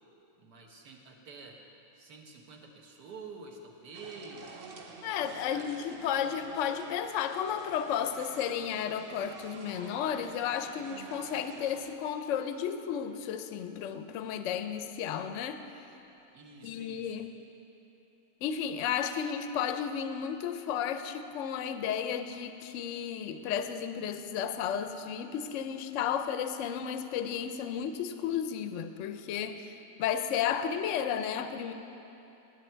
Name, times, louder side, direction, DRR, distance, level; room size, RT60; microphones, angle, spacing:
voice 1, 0.4-1.6 1.9-4.6 5.5-5.7 16.3-17.3, right 4 dB, 75° right, 1 dB, 1.8 m, -48 dB
sound 1, 3.9-11.9, right 4 dB, 55° right, 0.6 m, -49 dB
voice 2, 5.0-15.6 16.6-17.3 18.4-31.7, left 8 dB, 70° left, 9 dB, 0.7 m, -33 dB
18.5 x 8.3 x 4.5 m, 3.0 s
omnidirectional pair, 1.8 m